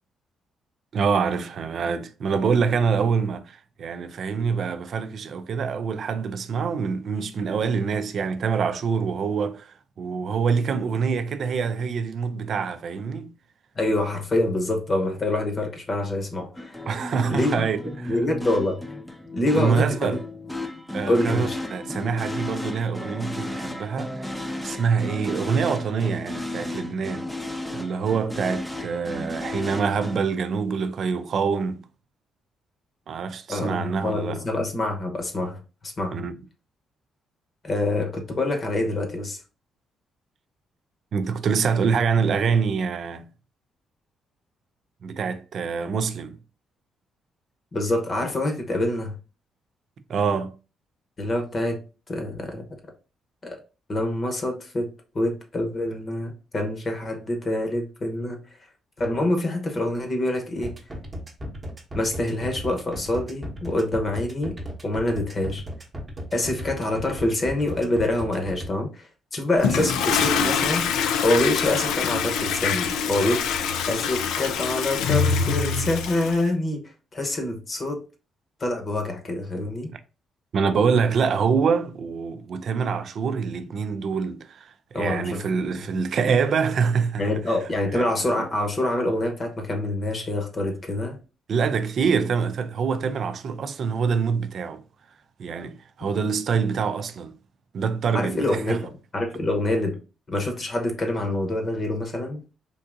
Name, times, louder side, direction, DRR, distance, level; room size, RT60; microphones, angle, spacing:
voice 1, 0.9-13.3 16.9-18.2 19.4-20.2 20.9-27.3 27.7-31.8 33.1-34.4 36.1-36.3 41.1-43.3 45.0-46.4 50.1-50.5 80.5-87.2 87.9-88.1 88.4-88.5 91.5-94.8 95.4-97.4 97.7-98.8, right 5 dB, 60° right, 0.4 m, -25 dB
voice 2, 13.8-16.7 17.3-17.7 18.1-18.8 19.3-20.2 21.1-21.6 33.5-36.2 37.6-39.4 47.7-49.1 51.2-51.8 52.1-52.6 53.4-53.6 53.9-54.9 55.1-58.4 59.0-60.7 61.9-64.6 64.8-65.6 66.3-70.9 71.2-73.4 73.9-76.8 77.1-78.0 78.6-79.9 84.9-85.4 87.2-91.2 98.1-99.9 100.3-102.4, left 1 dB, 40° left, 0.9 m, -26 dB
sound 1, 16.6-30.2, left 1 dB, 5° left, 0.5 m, -34 dB
sound 2, 60.6-68.7, equal, 25° right, 0.9 m, -35 dB
Toilet flush, 69.6-76.4, left 6 dB, 90° left, 0.4 m, -24 dB
3.5 x 2.6 x 2.5 m
cardioid pair, 90°, 0 cm